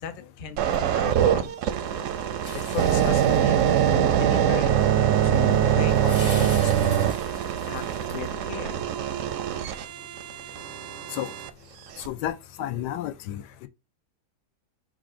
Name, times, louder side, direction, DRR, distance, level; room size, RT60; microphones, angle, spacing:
voice 1, 0.0-1.5 2.0-2.1 2.5-4.7 5.2-7.0 7.3-7.4 7.7-7.8 8.1-8.8, left 5 dB, 60° left, 0.5 m, -36 dB
sound 1, 0.6-11.5 12.1-12.3, right 10 dB, 70° right, 0.8 m, -23 dB
sound 2, 2.4-8.5, left 2 dB, 25° left, 0.7 m, -43 dB
voice 2, 12.0-13.7, left 12 dB, 85° left, 1.2 m, -32 dB
4.2 x 2.5 x 4.8 m
omnidirectional pair, 1.8 m